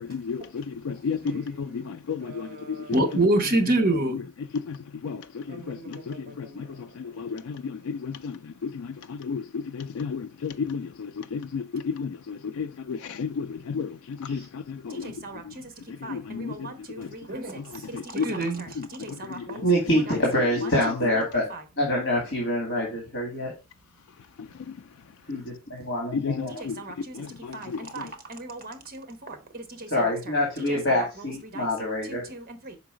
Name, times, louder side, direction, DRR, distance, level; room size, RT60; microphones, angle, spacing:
voice 1, 0.1-2.5 5.0-5.2 5.5-5.8 6.1-6.5 7.2-7.6 8.0-8.3 8.6-8.7 9.3-9.4 9.8-10.9 11.3-13.9 14.3-14.4 16.1-16.5 17.0-17.1 17.9-18.2 19.4-19.5 26.1-26.8 27.2-27.3 27.7-27.8, left 5 dB, 70° left, 0.4 m, -31 dB
voice 2, 1.2-4.2 5.5-6.6 15.0-15.4 16.0-19.7 19.9-20.2 20.6-21.6 26.5-27.2 27.5-31.7 32.0-32.8, right 2 dB, 40° right, 1.1 m, -31 dB
voice 3, 19.6-21.5 21.8-23.5 25.3-26.5 29.9-32.3, left 1 dB, 55° left, 2.2 m, -25 dB
5.7 x 3.9 x 4.9 m
head